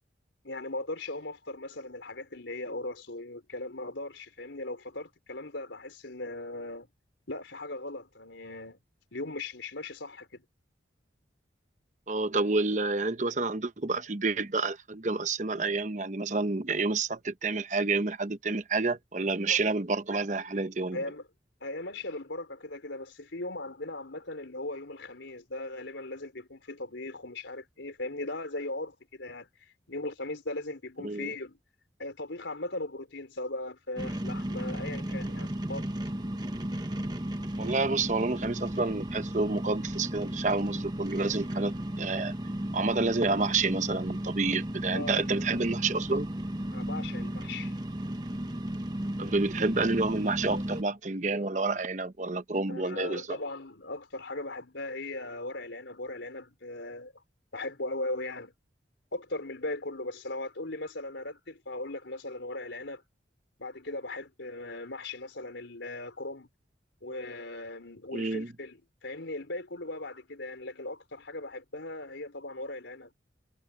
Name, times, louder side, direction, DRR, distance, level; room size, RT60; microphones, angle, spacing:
voice 1, 0.4-6.9 7.3-8.8 9.1-10.4 19.5-19.6 20.9-21.3 21.6-31.6 32.0-35.9 44.9-45.3 46.7-47.8 52.7-57.1 57.5-58.5 59.1-63.0 63.6-66.5 67.0-73.1, left 2 dB, 90° left, 4.5 m, -38 dB
voice 2, 12.1-21.0 31.0-31.3 37.6-42.3 42.7-46.3 49.2-53.4 68.1-68.5, right 3 dB, 40° right, 0.9 m, -29 dB
sound 1, 34.0-50.8, right 1 dB, 20° right, 1.3 m, -34 dB
head